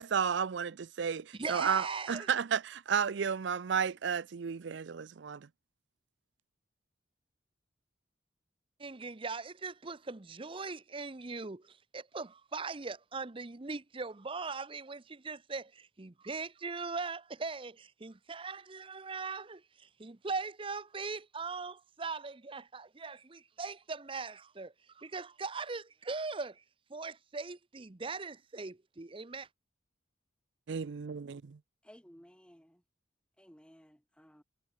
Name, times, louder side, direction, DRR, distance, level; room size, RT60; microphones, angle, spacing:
voice 1, 0.0-5.5 30.7-31.6, right 7 dB, 70° right, 0.5 m, -33 dB
voice 2, 1.3-2.3 8.8-26.6 26.9-29.5, right 4 dB, 30° right, 0.7 m, -40 dB
voice 3, 31.8-32.8 33.4-34.4, equal, 5° left, 5.9 m, -58 dB
head